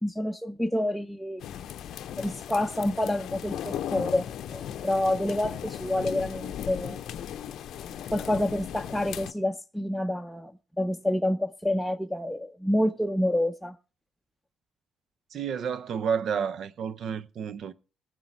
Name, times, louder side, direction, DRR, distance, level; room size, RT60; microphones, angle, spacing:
voice 1, 0.0-1.4 2.2-7.0 8.1-10.5 10.8-13.7, left 1 dB, 5° left, 0.7 m, -28 dB
sound 1, 1.4-9.3, left 10 dB, 65° left, 0.6 m, -37 dB
voice 2, 15.3-17.7, right 7 dB, 60° right, 0.6 m, -30 dB
18.5 x 7.5 x 4.6 m
hypercardioid pair, 55°, 0 cm